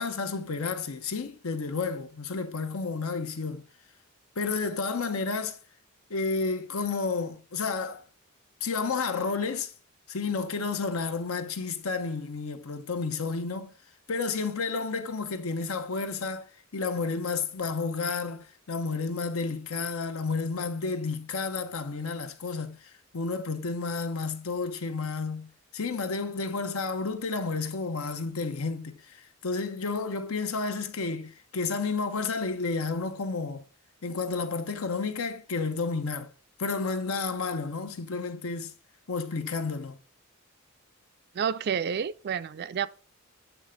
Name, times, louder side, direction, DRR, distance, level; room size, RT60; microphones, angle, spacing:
voice 1, 0.0-3.6 4.4-5.6 6.1-8.0 8.6-9.7 10.1-13.7 14.1-33.6 34.0-36.3 36.6-38.7 39.1-40.0, left 4 dB, 75° left, 0.8 m, -31 dB
voice 2, 41.3-42.9, right 7 dB, 50° right, 0.4 m, -29 dB
8.2 x 3.3 x 5.0 m
head